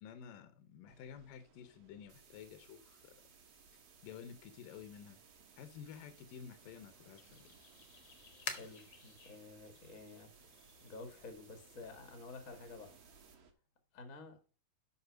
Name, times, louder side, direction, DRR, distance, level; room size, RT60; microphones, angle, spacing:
voice 1, 0.0-3.1 4.0-5.2 5.6-7.5, left 8 dB, 75° left, 2.4 m, -52 dB
sound 1, 0.9-13.5, right 5 dB, 75° right, 2.9 m, -66 dB
sound 2, 2.1-13.3, right 6 dB, 45° right, 2.2 m, -64 dB
sound 3, 6.5-11.7, left 7 dB, 60° left, 1.7 m, -51 dB
voice 2, 8.5-10.5 10.8-13.0 13.9-14.4, left 3 dB, 40° left, 1.1 m, -51 dB
8.2 x 5.9 x 5.1 m
omnidirectional pair, 4.2 m